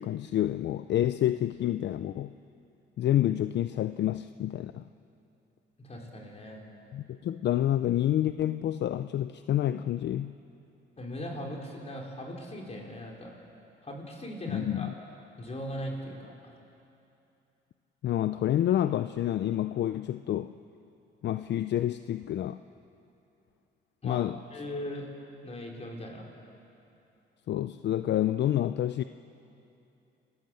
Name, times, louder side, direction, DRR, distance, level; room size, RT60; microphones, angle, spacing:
voice 1, 0.0-2.3 3.0-4.8 6.9-10.3 14.5-14.9 18.0-20.5 21.2-22.6 24.0-24.4 27.5-29.0, left 12 dB, 60° left, 12 dB, 0.5 m, -28 dB
voice 2, 5.8-6.6 11.0-13.3 13.8-14.9 15.4-16.6 24.0-24.2 24.5-25.1 25.4-26.3, equal, 30° left, 0 dB, 4.6 m, -39 dB
29.0 x 14.0 x 7.8 m, 2.8 s
cardioid pair, 90°, 20 cm